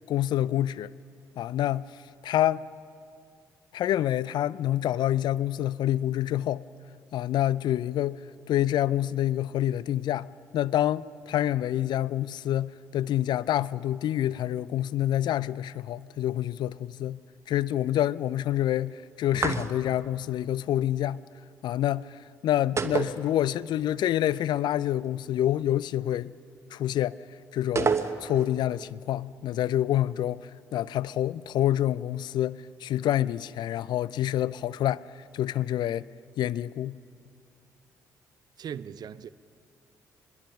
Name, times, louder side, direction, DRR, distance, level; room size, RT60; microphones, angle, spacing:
voice 1, 0.1-0.9 1.4-1.9 2.2-2.7 3.7-6.6 7.1-8.2 8.5-10.3 10.5-17.2 17.5-21.2 21.6-26.3 26.7-27.2 27.5-27.9 28.2-35.0 35.3-36.1 36.4-37.0, left 12 dB, 60° left, 0.5 m, -27 dB
sound 1, 19.3-20.1 22.8-23.8 24.1-24.2 27.8-28.6, right 5 dB, 35° right, 1.2 m, -28 dB
voice 2, 38.6-39.3, right 8 dB, 50° right, 0.6 m, -38 dB
24.5 x 21.5 x 5.4 m
hypercardioid pair, 45°, 9 cm